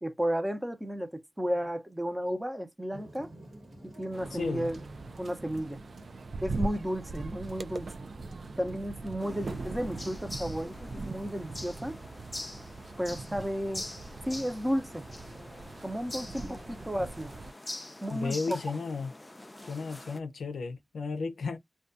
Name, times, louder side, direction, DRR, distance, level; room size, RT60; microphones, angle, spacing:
voice 1, 0.0-3.3 3.8-4.8 5.2-5.8 6.4-7.9 8.6-12.0 13.0-13.9 14.3-15.0 15.8-17.3 18.0-18.6, equal, 15° right, 0.7 m, -33 dB
sound 1, 2.9-10.2, right 1 dB, 85° right, 1.1 m, -50 dB
sound 2, 4.1-17.5, right 3 dB, 65° right, 0.3 m, -41 dB
voice 2, 4.3-4.7 18.1-19.1 19.6-21.6, left 4 dB, 85° left, 0.4 m, -34 dB
sound 3, 9.2-20.2, left 1 dB, 25° left, 0.4 m, -44 dB
2.3 x 2.2 x 2.5 m
cardioid pair, 40°, 0 cm